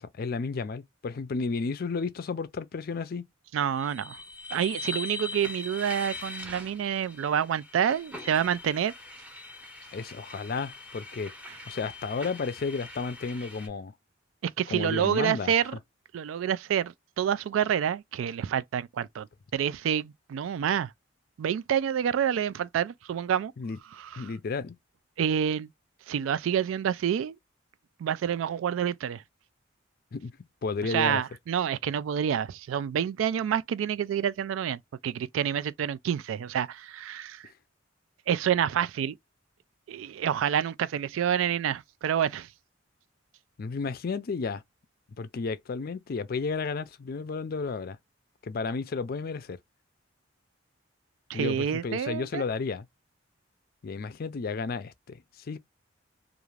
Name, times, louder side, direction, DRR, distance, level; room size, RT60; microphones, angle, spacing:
voice 1, 0.0-3.3 9.9-11.3 11.7-13.9 14.7-15.5 23.6-23.8 24.2-24.8 30.1-30.3 30.6-31.2 37.4-37.5 43.6-44.6 45.2-48.0 48.4-49.6 51.3-52.9 53.8-55.6, left 4 dB, 50° left, 0.4 m, -32 dB
voice 2, 3.5-4.2 4.5-8.9 14.6-15.8 16.1-19.3 19.5-20.9 21.4-23.5 24.0-24.2 25.2-25.7 26.1-27.3 28.0-29.2 30.8-37.4 38.3-39.2 39.9-42.5 51.3-52.4, right 9 dB, 85° right, 0.3 m, -28 dB
sound 1, 3.7-13.7, left 3 dB, 5° right, 0.7 m, -42 dB
2.5 x 2.4 x 3.1 m
head